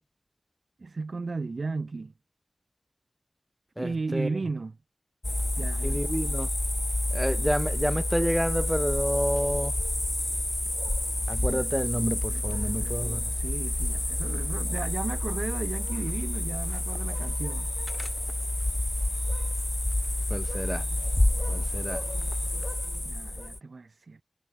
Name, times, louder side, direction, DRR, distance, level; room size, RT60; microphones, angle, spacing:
voice 1, 0.8-2.1 3.8-4.8 5.6-6.0 11.5-11.7 12.3-17.7 23.0-24.2, right 3 dB, 60° right, 2.3 m, -35 dB
voice 2, 3.8-4.3 5.8-6.5 7.1-9.7 11.3-13.2 20.3-20.8 21.5-22.0, equal, 5° right, 1.6 m, -29 dB
sound 1, 5.2-23.6, left 1 dB, 20° left, 0.4 m, -29 dB
wide cardioid pair, 85°, 0 cm